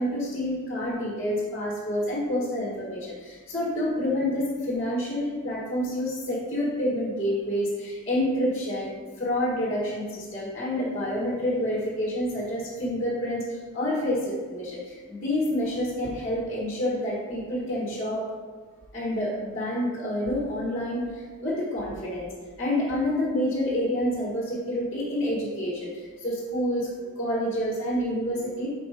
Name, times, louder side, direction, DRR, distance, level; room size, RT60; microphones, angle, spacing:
voice 1, 0.0-18.3 18.9-22.3 22.6-28.7, left 1 dB, 30° left, -6 dB, 1.6 m, -28 dB
5.8 x 5.1 x 4.9 m, 1.5 s
head